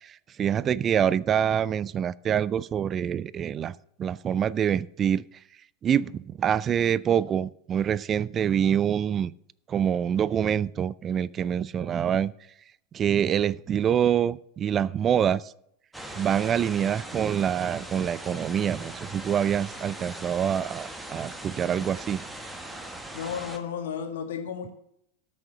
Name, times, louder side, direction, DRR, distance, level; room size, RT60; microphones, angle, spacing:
voice 1, 0.0-5.2 5.8-9.3 9.7-12.3 12.9-15.5 16.1-22.2, right 9 dB, 30° right, 21 dB, 0.4 m, -26 dB
sound 1, 15.9-23.6, right 1 dB, 5° right, 1.5 m, -40 dB
voice 2, 23.1-24.7, left 7 dB, 65° left, 5 dB, 2.1 m, -33 dB
13.0 x 6.4 x 6.5 m, 0.72 s
figure-of-eight pair, 85°, 0 cm